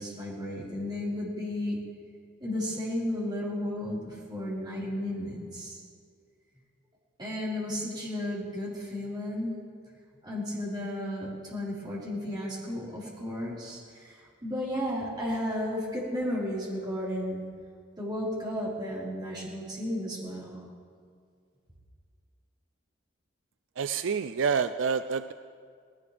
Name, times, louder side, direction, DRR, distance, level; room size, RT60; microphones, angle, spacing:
voice 1, 0.0-1.8 2.4-5.8 7.2-9.5 10.2-17.4 18.0-20.6, left 1 dB, 25° right, -7 dB, 4.6 m, -33 dB
voice 2, 23.8-25.3, right 6 dB, 75° right, 10 dB, 0.4 m, -28 dB
19.0 x 17.0 x 3.4 m, 2.1 s
head